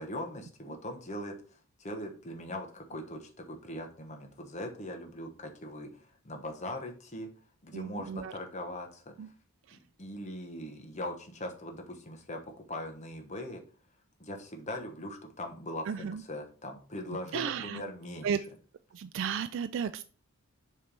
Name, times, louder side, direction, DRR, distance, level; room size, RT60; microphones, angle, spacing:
voice 1, 0.0-1.3 1.8-7.3 7.6-9.1 9.7-12.4 12.7-13.6 14.2-18.3, left 1 dB, 35° left, 3 dB, 1.1 m, -40 dB
voice 2, 7.7-8.3 9.2-9.3 9.7-9.8 15.9-16.2 17.3-17.8 18.2-18.4 18.9-20.0, right 7 dB, 60° right, 10 dB, 0.3 m, -34 dB
7.1 x 3.3 x 5.1 m, 0.40 s
head